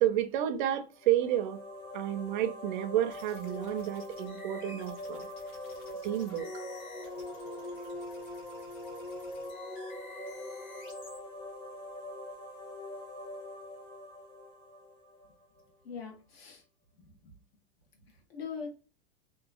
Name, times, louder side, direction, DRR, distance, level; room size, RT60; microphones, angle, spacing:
voice 1, 0.0-1.6 1.9-5.3 6.0-7.1, right 12 dB, 50° right, 0.5 m, -31 dB
sound 1, 0.9-15.6, left 1 dB, 15° left, 0.6 m, -43 dB
sound 2, 3.1-11.2, left 2 dB, 50° left, 1.5 m, -53 dB
voice 2, 15.8-16.6 17.0-17.3 17.9-18.7, left 6 dB, 75° left, 1.3 m, -42 dB
2.9 x 2.4 x 2.3 m
supercardioid pair, 155°, 30 cm